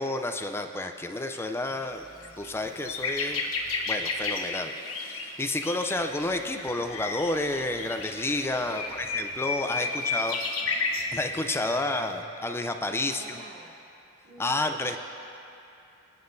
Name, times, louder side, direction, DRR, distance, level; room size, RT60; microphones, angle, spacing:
voice 1, 0.0-2.1 2.4-3.4 3.9-4.7 5.0-10.4 11.1-13.4 14.4-15.0, left 2 dB, 10° left, 6 dB, 0.4 m, -30 dB
sound 1, 1.2-1.4 1.8-1.9 2.2-11.1 11.8-12.0, left 4 dB, 90° left, 1.2 m, -32 dB
sound 2, 1.7-4.2 6.0-9.6 10.7-12.3, equal, 10° right, 1.0 m, -56 dB
voice 2, 8.5-9.0 9.6-10.7 11.6-12.0 12.9-13.7 14.2-15.0, right 2 dB, 70° right, -10 dB, 2.8 m, -47 dB
24.0 x 9.9 x 2.7 m, 2.7 s
head